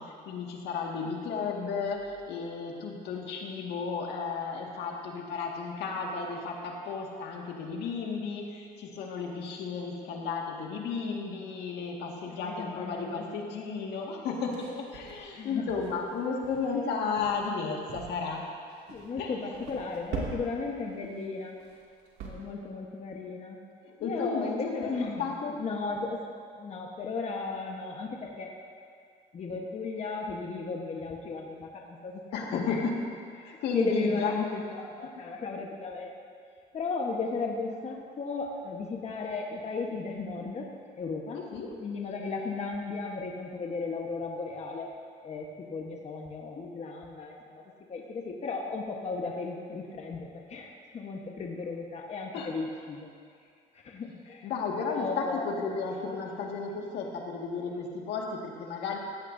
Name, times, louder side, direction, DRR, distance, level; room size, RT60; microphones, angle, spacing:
voice 1, 0.0-18.4 19.2-19.3 23.8-25.6 32.3-33.0 33.4-34.3 41.3-41.8 52.3-52.5 54.4-59.0, left 5 dB, 80° left, 0 dB, 1.9 m, -33 dB
voice 2, 12.2-13.3 15.3-15.8 18.9-21.6 22.2-23.6 24.0-25.3 25.6-26.2 26.5-28.6 29.3-32.2 32.5-32.9 33.4-36.1 36.7-41.4 41.8-44.9 45.2-53.1 53.7-54.5 54.8-55.5, left 4 dB, 40° left, 0 dB, 1.2 m, -35 dB
sound 1, 14.3-16.1 16.4-16.7 17.2-17.5 17.9-18.4 18.7-19.1 19.5-20.7 21.0-21.2 21.6-22.3, right 4 dB, 80° right, 2.5 m, -41 dB
16.0 x 15.0 x 2.7 m, 2.3 s
cardioid pair, 110°, 17 cm